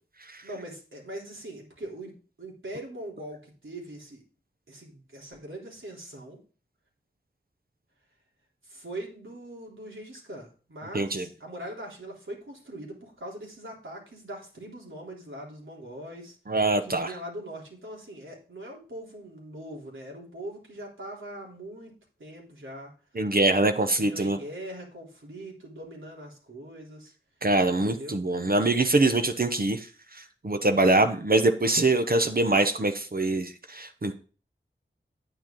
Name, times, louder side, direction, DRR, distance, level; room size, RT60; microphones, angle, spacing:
voice 1, 0.4-4.2 4.7-6.4 8.6-16.4 16.8-21.9 22.2-23.2 24.0-27.1 27.7-28.2, right 1 dB, 75° right, -1 dB, 3.6 m, -41 dB
voice 2, 10.9-11.3 16.5-17.1 23.1-24.4 27.4-29.9 30.1-34.2, right 2 dB, 45° right, 6 dB, 1.0 m, -24 dB
9.5 x 9.0 x 3.9 m, 0.37 s
wide cardioid pair, 75°, 20 cm